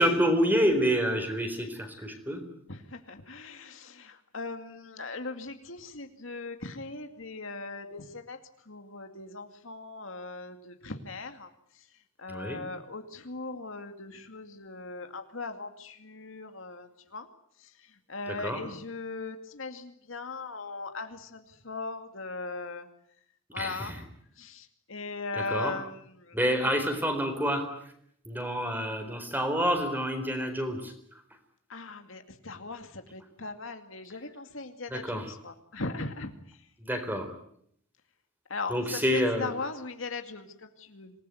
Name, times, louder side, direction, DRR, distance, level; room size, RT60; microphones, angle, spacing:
voice 1, 0.0-2.4 12.3-12.6 18.3-18.6 23.6-24.0 25.3-25.8 26.3-27.7 28.3-30.9 34.9-35.3 36.8-37.3 38.7-39.5, equal, 10° right, 7 dB, 4.2 m, -28 dB
voice 2, 2.7-8.4 8.7-11.5 12.2-17.3 18.1-22.9 23.5-24.0 24.4-26.7 31.7-36.3 38.5-38.8 39.1-41.1, left 3 dB, 70° left, 6 dB, 2.4 m, -39 dB
26.5 x 19.5 x 9.3 m, 0.71 s
head